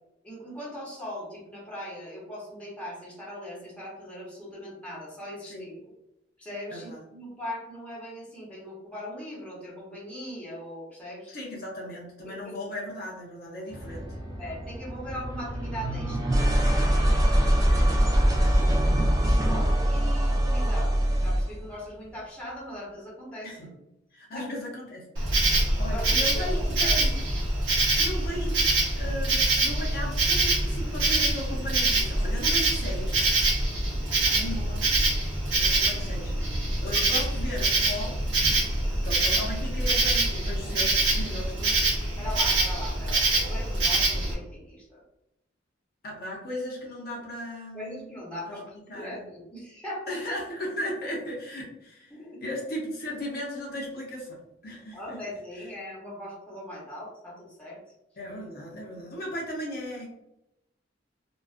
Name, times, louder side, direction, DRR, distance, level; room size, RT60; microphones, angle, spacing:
voice 1, 0.2-5.8 6.4-11.3 12.2-12.6 14.4-17.0 19.5-20.9 21.2-23.8 24.3-24.5 25.9-27.0 34.2-34.5 42.2-45.0 47.7-50.1 52.1-52.4 54.9-57.8, equal, 5° left, -7 dB, 0.8 m, -40 dB
voice 2, 11.3-14.1 17.7-17.9 18.3-18.8 23.4-23.7 24.1-25.0 25.8-27.2 28.0-28.6 28.9-33.2 34.3-34.8 35.5-38.2 39.0-41.9 46.0-48.2 48.9-49.3 50.1-52.1 52.4-55.2 58.2-60.1, equal, 55° left, -3 dB, 0.6 m, -36 dB
sound 1, 13.7-21.6, equal, 20° right, 0.4 m, -23 dB
Insect, 25.2-44.3, right 2 dB, 70° right, 0.7 m, -25 dB
2.4 x 2.2 x 2.4 m, 0.88 s
head